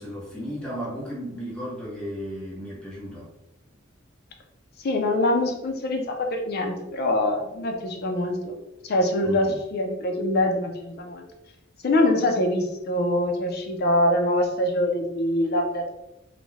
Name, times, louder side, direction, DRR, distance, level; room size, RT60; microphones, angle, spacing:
voice 1, 0.0-3.3 9.2-9.6, equal, 5° left, -6 dB, 0.8 m, -35 dB
voice 2, 4.8-8.6 8.9-11.2 11.8-15.9, left 1 dB, 55° left, 3 dB, 0.5 m, -24 dB
2.5 x 2.1 x 3.2 m, 0.90 s
head